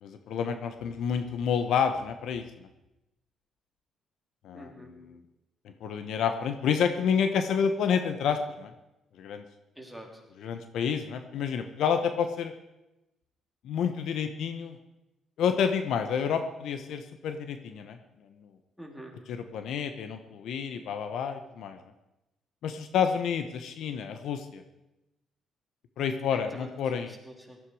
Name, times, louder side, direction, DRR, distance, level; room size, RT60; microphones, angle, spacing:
voice 1, 0.0-2.7 4.4-5.2 5.6-8.7 9.2-9.4 10.4-12.5 13.6-14.8 15.4-18.0 19.3-21.8 22.6-24.6 26.0-27.1, left 7 dB, 75° left, 8 dB, 1.0 m, -29 dB
voice 2, 4.5-4.9 9.8-10.1 18.8-19.2 26.3-26.7 27.1-27.6, right 1 dB, 5° left, 1 dB, 3.7 m, -45 dB
17.5 x 13.5 x 4.9 m, 0.95 s
cardioid pair, 95°, 0 cm